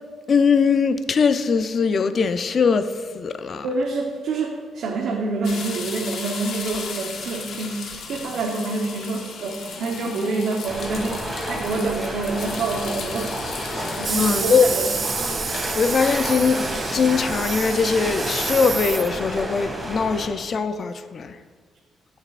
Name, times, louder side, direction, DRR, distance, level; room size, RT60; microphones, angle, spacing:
voice 1, 0.3-3.7 14.1-14.7 15.7-16.6 16.9-21.4, left 5 dB, 50° left, 10 dB, 0.5 m, -21 dB
voice 2, 3.6-13.6 14.0-14.9, right 3 dB, 70° right, 0 dB, 1.0 m, -27 dB
sound 1, 5.4-17.9, left 5 dB, 70° left, 1.1 m, -36 dB
sound 2, 10.7-20.3, right 1 dB, 15° right, 2.1 m, -30 dB
sound 3, 14.0-19.4, right 5 dB, 40° right, 0.5 m, -29 dB
14.5 x 6.8 x 2.5 m, 1.6 s
cardioid pair, 90°, 0 cm